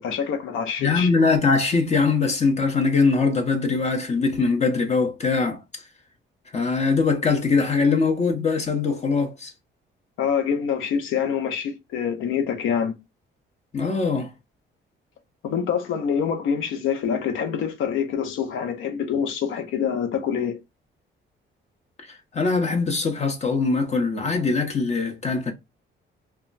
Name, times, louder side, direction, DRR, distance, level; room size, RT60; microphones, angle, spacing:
voice 1, 0.0-1.1 10.2-12.9 15.4-20.6, left 7 dB, 85° left, 0.6 m, -25 dB
voice 2, 0.8-5.6 6.5-9.5 13.7-14.3 22.0-25.5, left 4 dB, 35° left, 0.7 m, -22 dB
2.2 x 2.1 x 3.8 m
cardioid pair, 90°, 20 cm